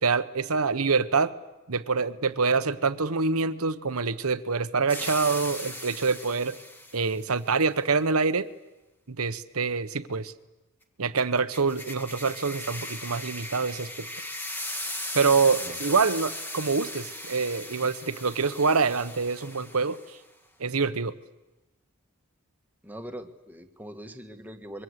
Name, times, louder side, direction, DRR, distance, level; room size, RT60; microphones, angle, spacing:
voice 1, 0.0-1.3 1.7-6.5 6.9-8.5 9.1-10.3 11.0-14.1 15.1-20.0 20.6-21.1, right 4 dB, 80° right, 12 dB, 1.1 m, -26 dB
sound 1, 4.9-7.2 11.2-20.1, left 1 dB, 10° left, 1.6 m, -38 dB
voice 2, 15.6-16.0 22.8-24.8, right 1 dB, 10° right, 6 dB, 1.5 m, -42 dB
25.5 x 23.5 x 8.1 m, 1.0 s
head